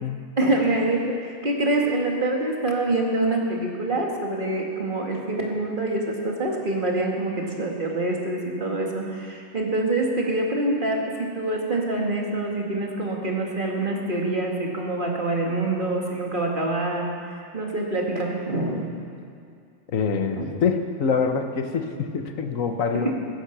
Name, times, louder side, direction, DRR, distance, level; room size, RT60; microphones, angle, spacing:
voice 1, 0.4-17.1 17.5-18.8 20.3-20.5 22.9-23.2, right 2 dB, 40° right, -1 dB, 2.2 m, -25 dB
voice 2, 19.9-23.1, left 5 dB, 80° left, 6 dB, 1.4 m, -25 dB
15.0 x 15.0 x 6.0 m, 2.3 s
omnidirectional pair, 1.4 m